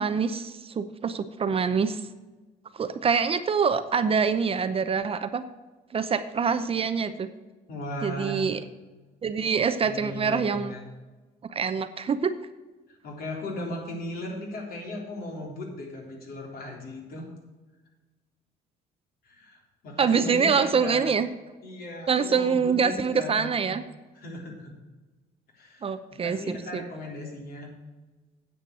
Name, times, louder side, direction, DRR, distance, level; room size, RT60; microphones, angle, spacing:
voice 1, 0.0-2.0 2.7-5.4 5.9-7.3 8.0-8.6 9.2-10.7 11.4-12.3 20.0-21.3 22.1-23.8 25.8-26.8, right 6 dB, 35° right, 11 dB, 0.7 m, -25 dB
voice 2, 7.7-8.5 9.8-10.8 12.9-17.3 19.2-21.1 21.6-23.6 24.1-24.7 25.5-25.9 26.2-27.7, left 1 dB, 60° left, 0 dB, 3.7 m, -37 dB
9.5 x 7.9 x 6.2 m, 1.2 s
cardioid pair, 110°, 17 cm